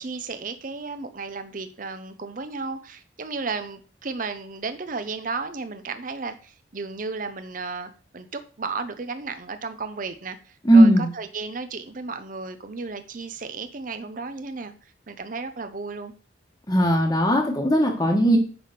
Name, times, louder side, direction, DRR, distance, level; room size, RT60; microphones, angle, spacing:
voice 1, 0.0-14.7 15.1-16.1, right 4 dB, 45° right, 0.7 m, -34 dB
voice 2, 10.6-11.1 16.7-18.4, right 1 dB, 20° left, 1.3 m, -17 dB
9.7 x 3.5 x 6.6 m
head